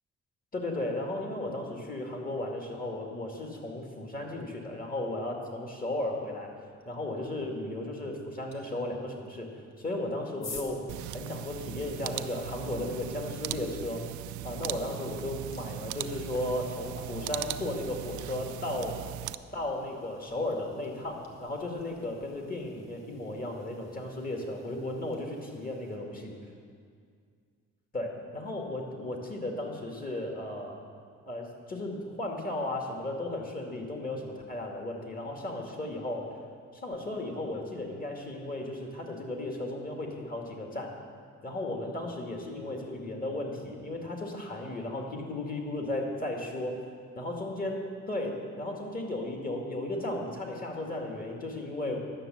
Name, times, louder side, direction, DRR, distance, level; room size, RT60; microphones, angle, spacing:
voice 1, 0.5-6.5 6.9-9.5 9.8-10.8 11.1-14.0 14.4-19.0 19.5-26.4 27.9-30.8 31.3-36.3 36.7-40.9 41.4-46.8 47.2-52.0, left 1 dB, 30° left, 1 dB, 2.2 m, -35 dB
sound 1, 8.5-8.6 9.7-12.1 14.4-14.5 15.0-26.0, left 3 dB, 60° left, 1.6 m, -51 dB
sound 2, 10.9-19.3, right 13 dB, 75° right, 0.5 m, -39 dB
11.0 x 6.5 x 7.8 m, 2.1 s
cardioid pair, 90°, 30 cm